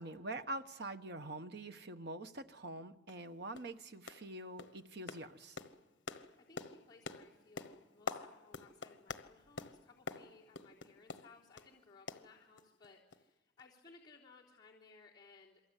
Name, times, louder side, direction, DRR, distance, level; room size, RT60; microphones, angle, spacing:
voice 1, 0.0-5.6, right 2 dB, 60° right, 8 dB, 1.2 m, -45 dB
sound 1, 2.6-2.7 3.1-3.2 3.5-3.8 4.1-4.3 4.6-11.7 12.1-12.9 13.1-13.2 13.6-13.7, left 4 dB, 65° left, 1.2 m, -47 dB
voice 2, 6.4-15.6, left 4 dB, 20° left, -7 dB, 3.6 m, -61 dB
28.0 x 23.5 x 8.4 m, 1.1 s
head